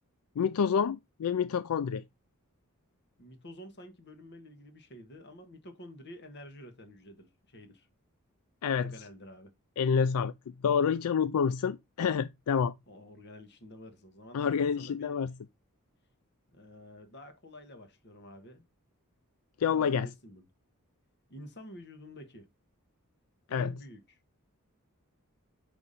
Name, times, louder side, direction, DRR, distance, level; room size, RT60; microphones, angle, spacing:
voice 1, 0.4-2.0 8.6-8.9 9.8-10.3 10.6-12.7 14.3-15.3 19.6-20.1 23.5-23.7, left 6 dB, 85° left, 0.4 m, -28 dB
voice 2, 3.2-7.9 8.7-9.5 12.9-15.2 16.5-18.7 19.7-20.5 21.3-22.5 23.5-24.2, left 1 dB, 50° left, 1.4 m, -49 dB
5.9 x 5.2 x 4.1 m
head